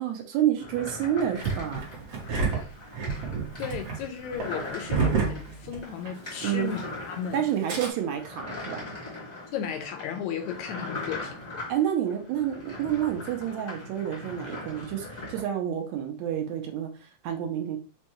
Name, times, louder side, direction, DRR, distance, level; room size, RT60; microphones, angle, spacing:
voice 1, 0.0-1.8 6.4-6.7 7.3-8.9 11.7-17.8, right 10 dB, 80° right, 1.8 m, -29 dB
sound 1, 0.6-15.4, left 2 dB, 35° left, 0.6 m, -40 dB
Engine starting, 1.4-6.3 6.5-6.6 7.5-7.9, right 5 dB, 65° right, 1.7 m, -29 dB
voice 2, 3.6-6.8 7.1-7.4 9.5-11.7, left 8 dB, 80° left, 1.7 m, -35 dB
5.3 x 2.2 x 2.9 m
omnidirectional pair, 3.5 m